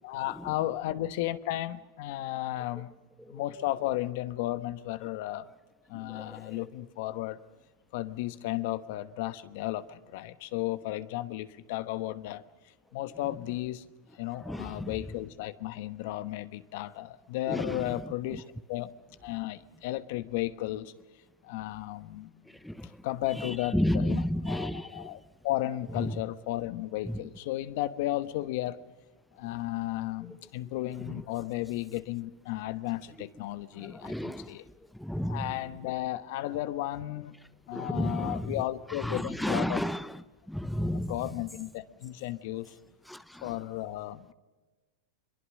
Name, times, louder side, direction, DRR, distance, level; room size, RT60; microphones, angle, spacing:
voice 1, 0.0-2.9 3.3-5.5 5.9-7.4 7.9-12.4 12.9-13.8 14.1-18.9 19.2-20.9 21.4-22.3 22.8-28.8 29.4-34.6 35.3-37.3 37.7-39.8 40.9-42.8 43.4-44.3, left 15 dB, 60° left, 1.2 m, -34 dB
voice 2, 6.0-6.7 14.4-14.9 17.5-17.9 22.6-22.9 23.4-25.1 26.0-26.1 27.1-27.2 33.8-34.5 35.0-35.5 37.7-38.5 39.0-40.2 40.5-41.2 43.1-43.5, equal, ahead, 0.8 m, -32 dB
23.5 x 23.0 x 6.5 m
hypercardioid pair, 120°, 0 cm